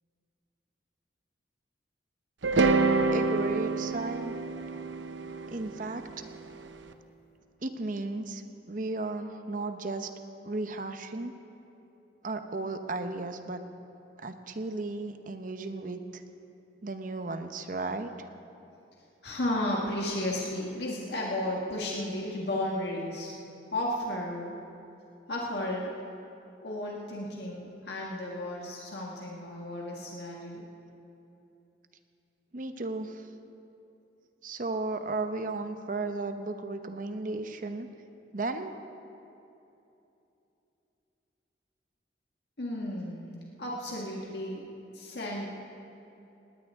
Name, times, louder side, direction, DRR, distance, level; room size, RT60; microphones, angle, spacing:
sound 1, 2.4-6.6, right 3 dB, 90° right, 0.8 m, -27 dB
voice 1, 3.1-4.3 5.5-6.0 7.6-10.1 10.4-11.3 12.2-13.6 14.2-16.2 16.8-18.1 32.5-33.3 34.4-37.9 38.3-38.7, right 2 dB, 45° right, 8 dB, 0.8 m, -34 dB
voice 2, 19.2-24.5 25.3-25.9 26.6-30.6 42.6-43.3 43.6-44.6 44.9-45.5, left 1 dB, 65° left, -3 dB, 1.7 m, -33 dB
19.5 x 18.0 x 3.6 m, 2.9 s
head